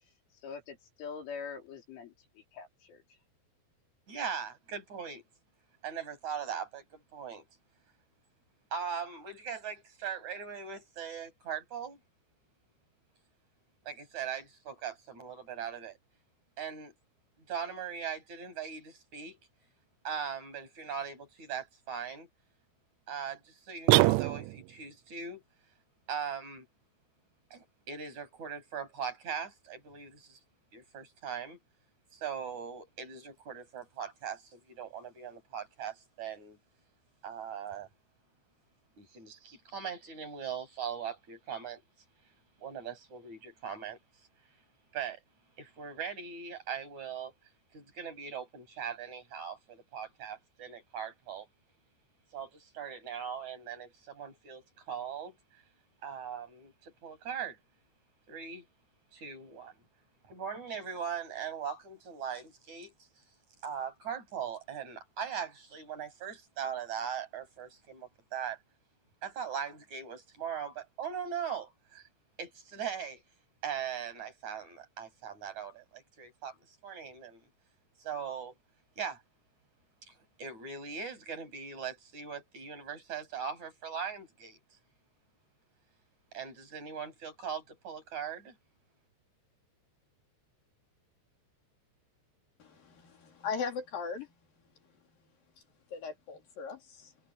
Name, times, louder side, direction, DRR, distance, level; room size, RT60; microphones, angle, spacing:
voice 1, 0.4-3.0, left 6 dB, 85° left, 7.1 m, -44 dB
voice 2, 4.1-5.2 5.8-7.5 8.7-12.0 13.9-16.0 16.6-16.9 17.5-19.4 20.0-22.3 23.1-25.4 26.1-26.7 27.5-30.4 30.7-31.6 32.1-36.6 37.2-37.9 39.0-41.8 42.6-44.3 44.9-45.2 45.6-47.3 47.7-51.5 52.3-55.6 56.0-57.6 58.3-58.7 59.1-59.8 60.3-62.9 63.6-68.6 69.2-72.1 72.4-73.2 73.6-77.5 78.0-78.6 79.0-79.2 80.4-84.6 86.3-88.6, right 7 dB, 35° right, 9.1 m, -40 dB
sound 1, 23.9-24.8, right 22 dB, 85° right, 3.0 m, -24 dB
voice 3, 92.6-94.3 95.9-97.1, left 5 dB, 50° left, 5.0 m, -38 dB
omnidirectional pair, 5.5 m